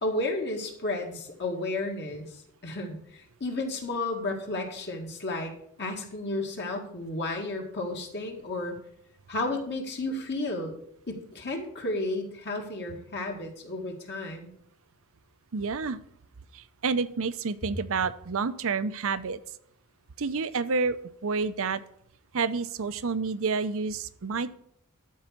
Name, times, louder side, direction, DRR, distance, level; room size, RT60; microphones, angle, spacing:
voice 1, 0.0-2.3 2.6-5.5 5.8-8.8 9.3-10.7 11.1-14.5, left 2 dB, 50° left, 2 dB, 2.0 m, -32 dB
voice 2, 15.5-16.0 16.5-19.4 20.2-21.8 22.3-24.5, right 4 dB, 65° right, 14 dB, 0.6 m, -29 dB
13.0 x 4.8 x 7.4 m, 0.69 s
head